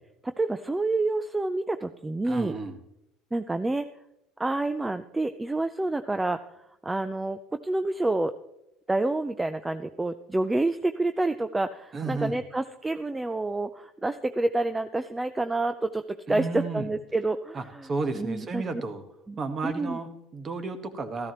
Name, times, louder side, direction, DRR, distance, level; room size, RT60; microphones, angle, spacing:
voice 1, 0.2-2.5 3.3-3.9 4.4-6.4 6.8-8.3 8.9-18.6 19.3-19.4 19.6-20.0, right 2 dB, 10° right, 10 dB, 0.4 m, -28 dB
voice 2, 2.2-2.8 11.9-12.4 16.3-16.9 17.5-19.0 19.4-21.3, right 3 dB, 30° right, 8 dB, 1.3 m, -32 dB
14.0 x 13.5 x 3.0 m, 0.83 s
supercardioid pair, 115°, 0 cm